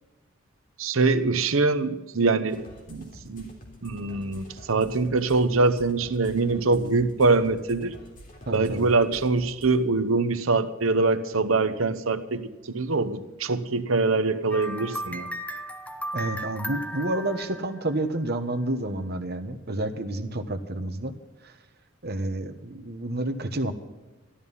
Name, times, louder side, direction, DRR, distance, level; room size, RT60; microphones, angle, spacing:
voice 1, 0.8-3.5 3.8-7.9 8.5-15.3, right 3 dB, 85° right, 11 dB, 1.0 m, -24 dB
sound 1, 2.5-9.8, equal, 45° left, 3.5 m, -48 dB
voice 2, 8.5-8.9 16.1-21.1 21.4-21.5 22.0-23.7, right 1 dB, 55° right, 8 dB, 1.3 m, -29 dB
sound 2, 14.5-18.3, equal, 5° left, 0.8 m, -35 dB
13.0 x 13.0 x 5.5 m, 1.1 s
head